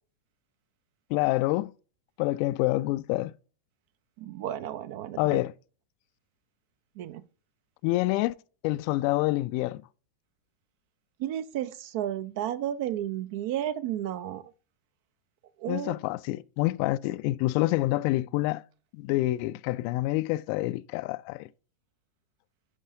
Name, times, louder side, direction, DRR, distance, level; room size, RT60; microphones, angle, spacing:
voice 1, 1.1-1.7 2.2-3.3 5.2-5.5 7.8-8.3 8.6-9.8 15.7-18.6 18.9-21.5, left 18 dB, 45° left, 0.3 m, -27 dB
voice 2, 4.2-5.4 7.0-7.2 11.2-14.4 15.6-15.9, right 11 dB, 50° right, 0.4 m, -32 dB
9.6 x 5.4 x 2.6 m
figure-of-eight pair, 90°, 0 cm